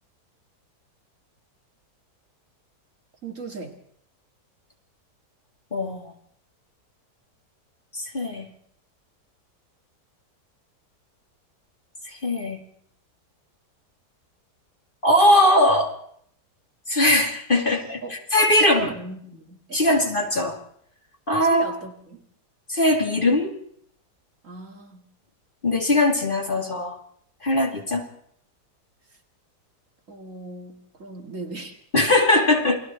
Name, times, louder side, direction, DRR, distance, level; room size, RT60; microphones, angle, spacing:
voice 1, 3.2-3.8 18.0-18.1 18.6-20.0 21.4-22.2 24.4-25.0 30.1-31.8, right 4 dB, 50° right, 3 dB, 2.5 m, -37 dB
voice 2, 5.7-6.1 7.9-8.5 12.1-12.6 15.0-16.0 16.9-18.9 19.7-20.6 21.3-21.7 22.7-23.6 25.6-27.0 27.4-28.1 31.9-32.8, left 1 dB, 30° left, 2 dB, 2.7 m, -20 dB
29.0 x 21.5 x 4.4 m, 0.65 s
omnidirectional pair, 1.8 m